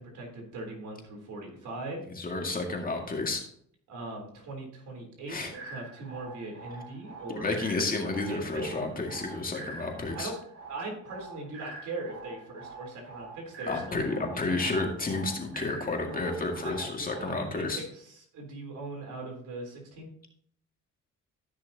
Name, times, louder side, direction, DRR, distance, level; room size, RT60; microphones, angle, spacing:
voice 1, 0.0-2.0 3.9-7.5 7.7-7.8 8.3-8.8 10.1-10.4 10.7-14.0 16.6-20.1, right 2 dB, 75° right, 1 dB, 3.8 m, -40 dB
voice 2, 2.1-3.4 5.3-5.5 7.4-10.3 13.7-17.8, left 3 dB, 30° left, 1 dB, 2.2 m, -31 dB
sound 1, 5.5-17.5, right 3 dB, 50° right, 4.1 m, -46 dB
15.0 x 6.3 x 2.9 m, 0.65 s
cardioid pair, 90°, 30 cm